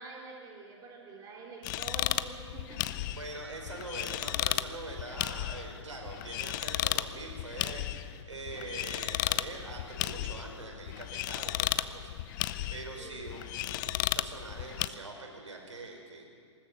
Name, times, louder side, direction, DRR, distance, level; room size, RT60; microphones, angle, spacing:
voice 1, 0.0-3.0 13.0-13.3, right 3 dB, 25° right, -1 dB, 3.3 m, -47 dB
sound 1, 1.6-14.9, left 14 dB, 40° left, 0.7 m, -34 dB
voice 2, 3.1-12.1 12.4-16.2, right 2 dB, 75° right, 1 dB, 5.2 m, -43 dB
20.5 x 19.5 x 6.9 m, 2.2 s
figure-of-eight pair, 120°, 16 cm